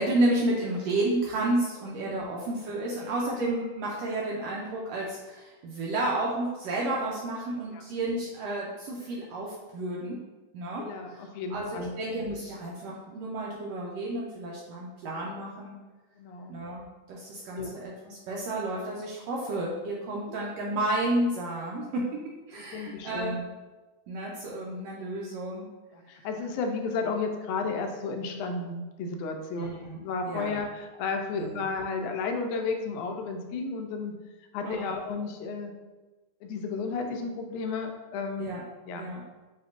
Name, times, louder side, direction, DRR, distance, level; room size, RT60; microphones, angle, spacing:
voice 1, 0.0-10.2 10.5-10.8 11.1-11.2 11.5-15.8 16.5-22.0 22.5-23.4 24.1-25.7 29.5-30.0 30.3-30.6 31.3-31.5 34.6-35.0 38.4-38.6 39.0-39.2, right 1 dB, 80° right, -3 dB, 1.5 m, -31 dB
voice 2, 10.8-12.0 16.2-16.6 17.5-17.7 20.3-20.4 22.6-23.5 25.9-34.1 34.5-35.7 36.4-38.5 38.9-39.1, left 4 dB, 85° left, 4 dB, 2.0 m, -33 dB
6.5 x 2.8 x 2.5 m, 1.2 s
omnidirectional pair, 3.4 m